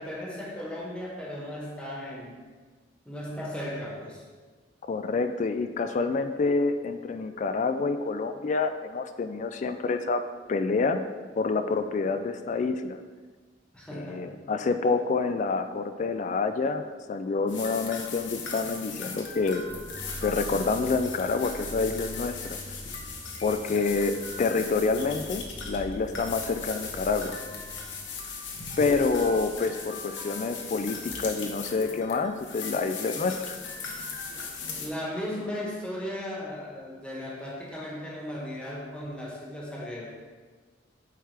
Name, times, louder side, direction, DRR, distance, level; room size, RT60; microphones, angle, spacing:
voice 1, 0.0-2.3 3.1-4.2 13.7-14.4 34.8-40.1, left 1 dB, 5° left, -4 dB, 1.4 m, -36 dB
voice 2, 4.9-10.2 10.5-11.0 11.4-13.0 13.9-19.7 20.2-22.6 23.4-27.4 28.8-33.6, left 4 dB, 40° left, 9 dB, 0.3 m, -27 dB
sound 1, 17.5-34.9, left 4 dB, 80° left, 1.0 m, -38 dB
sound 2, 19.6-28.0, equal, 80° right, 1.1 m, -44 dB
7.8 x 4.9 x 3.4 m, 1.4 s
head